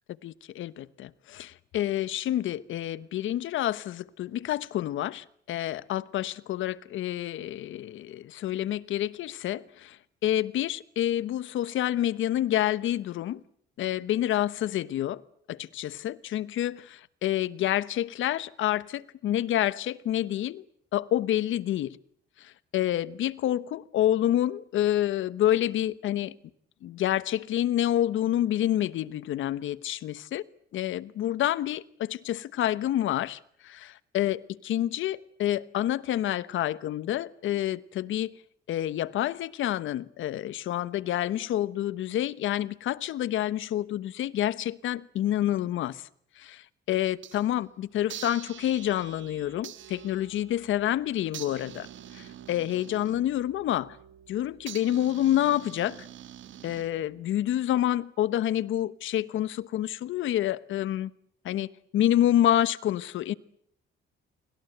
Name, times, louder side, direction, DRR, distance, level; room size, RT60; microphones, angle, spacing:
voice 1, 0.2-13.4 13.8-15.2 15.5-20.6 20.9-22.0 22.4-26.3 26.8-30.4 30.7-38.4 38.7-46.1 46.4-51.9 52.1-54.0 54.3-56.1 56.6-61.1 61.4-61.7 61.9-63.3, left 12 dB, 75° left, 1.1 m, -28 dB
sound 1, 47.1-47.7 48.1-57.2, right 11 dB, 75° right, 1.8 m, -46 dB
29.5 x 24.5 x 8.0 m
cardioid pair, 90°, 20 cm